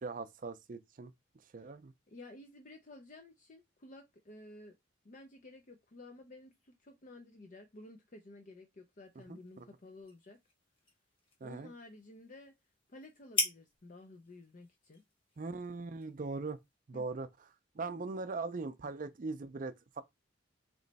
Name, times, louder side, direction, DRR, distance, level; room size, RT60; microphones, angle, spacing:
voice 1, 0.0-1.1 1.5-1.9 9.3-9.7 11.4-11.7 15.4-16.6 16.9-17.3 17.7-20.0, right 3 dB, 45° right, 0.5 m, -40 dB
voice 2, 2.1-4.7 5.0-10.4 11.4-12.5 12.9-15.0 16.9-17.0, left 2 dB, 45° left, 0.5 m, -53 dB
sound 1, 9.0-16.8, left 2 dB, 30° left, 1.3 m, -43 dB
3.1 x 3.1 x 4.0 m
head